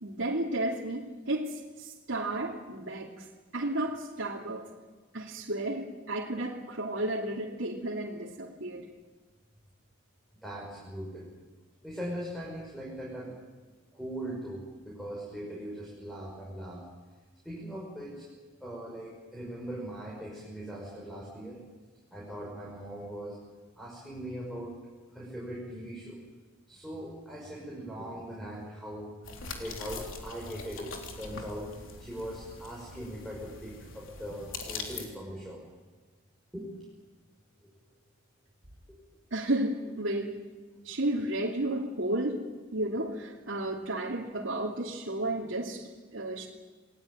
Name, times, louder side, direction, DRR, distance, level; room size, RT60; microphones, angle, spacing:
voice 1, 0.0-3.2 3.5-4.7 5.1-8.9 39.3-40.4 40.8-42.5 42.7-46.5, right 1 dB, 75° right, -3 dB, 2.9 m, -32 dB
voice 2, 10.4-11.3 11.8-13.4 13.9-16.8 17.4-18.2 18.6-21.6 22.1-23.4 23.8-24.7 25.1-26.2 26.7-29.1 29.6-31.7 32.0-35.6 36.5-36.7 37.6-37.7 38.9-39.0 40.8-40.9, equal, ahead, -4 dB, 6.1 m, -40 dB
sound 1, 29.2-35.1, left 4 dB, 75° left, 3.5 m, -42 dB
28.5 x 19.5 x 9.3 m, 1.3 s
head